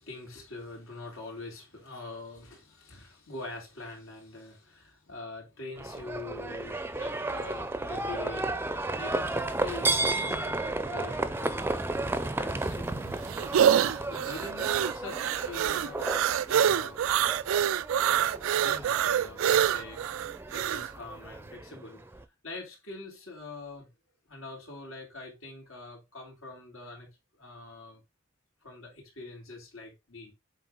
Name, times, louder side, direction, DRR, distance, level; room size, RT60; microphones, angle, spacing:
voice 1, 0.0-13.0 13.6-13.8 14.0-16.1 16.5-17.0 18.1-20.2 20.5-22.0 22.4-23.9 24.3-28.0 28.6-30.3, left 2 dB, 90° left, 3.8 m, -44 dB
Livestock farm animals working animals, 5.8-22.2, right 2 dB, 10° right, 0.5 m, -33 dB
sound 1, 12.6-20.9, right 9 dB, 80° right, 0.3 m, -26 dB
8.2 x 3.7 x 3.8 m
head